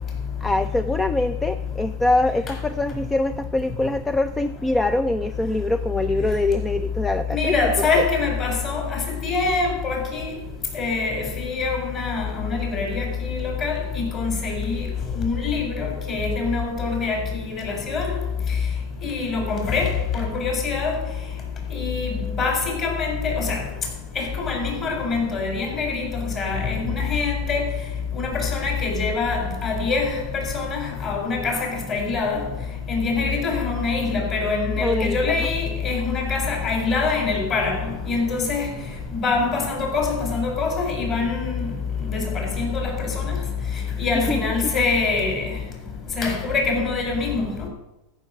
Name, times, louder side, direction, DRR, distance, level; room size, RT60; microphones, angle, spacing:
voice 1, 0.4-8.1 34.8-35.5 44.2-44.7, left 2 dB, 10° left, 0.4 m, -24 dB
voice 2, 7.3-10.3 10.7-14.9 15.1-18.1 19.0-21.0 21.7-23.6 24.2-26.1 26.3-27.6 28.1-32.4 32.9-38.7 39.2-41.6 42.0-43.3 44.0-45.5 46.2-47.5, left 4 dB, 35° left, 4.5 m, -24 dB
14.0 x 6.2 x 7.7 m
supercardioid pair, 145°, 0 cm